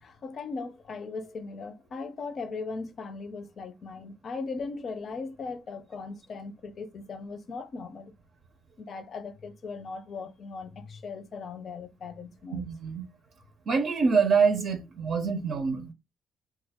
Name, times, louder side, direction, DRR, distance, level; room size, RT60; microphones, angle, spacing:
voice 1, 0.0-8.1 8.8-12.7, left 4 dB, 55° left, 0.5 m, -38 dB
voice 2, 12.5-13.1 13.7-15.9, right 5 dB, 65° right, 0.5 m, -25 dB
3.0 x 2.2 x 3.4 m
cardioid pair, 90°, 0 cm